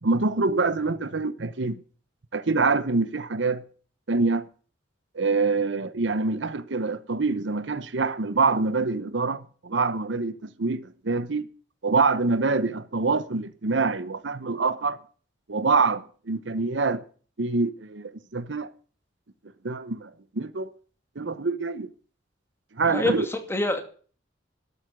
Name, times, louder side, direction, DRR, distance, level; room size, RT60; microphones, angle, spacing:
voice 1, 0.0-1.8 2.3-3.6 4.1-4.5 5.1-11.5 11.8-15.0 15.5-17.0 17.4-18.7 19.6-20.7 21.2-21.9 22.7-23.3, right 3 dB, 70° right, 0.9 m, -25 dB
voice 2, 22.9-23.8, left 1 dB, 15° left, 2.4 m, -26 dB
12.5 x 8.5 x 9.6 m
head